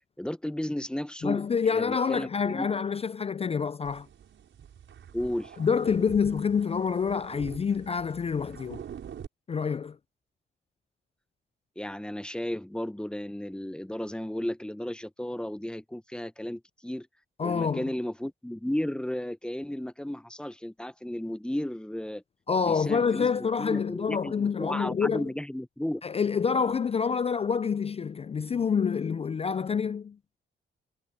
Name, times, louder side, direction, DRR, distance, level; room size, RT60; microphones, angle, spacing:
voice 1, 0.2-1.5 1.7-2.7 5.1-5.6 11.8-17.1 17.4-22.2 22.6-26.0, left 1 dB, 5° left, 0.9 m, -34 dB
voice 2, 1.2-4.1 5.6-8.8 9.5-10.0 17.4-17.8 22.5-25.2 26.0-30.2, left 6 dB, 30° left, 0.4 m, -27 dB
sound 1, 3.8-9.3, right 8 dB, 75° right, 6.0 m, -45 dB
cardioid pair, 80°, 20 cm